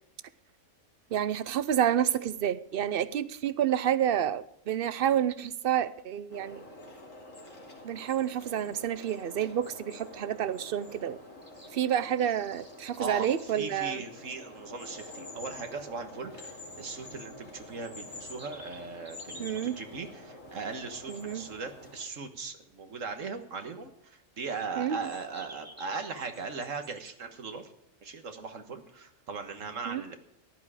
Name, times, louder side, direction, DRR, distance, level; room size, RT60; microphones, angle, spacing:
voice 1, 1.1-6.6 7.8-11.2 11.7-14.0 19.4-19.8 21.1-21.5 24.8-25.0 29.9-30.0, right 10 dB, 55° right, 0.8 m, -29 dB
sound 1, 6.3-22.0, left 2 dB, 85° left, 3.2 m, -47 dB
sound 2, 11.3-13.6 17.4-19.9 24.4-27.1, right 1 dB, 15° right, 1.4 m, -52 dB
voice 2, 13.0-27.7 28.0-30.2, right 4 dB, 85° right, 1.8 m, -39 dB
14.5 x 11.0 x 4.9 m
omnidirectional pair, 1.3 m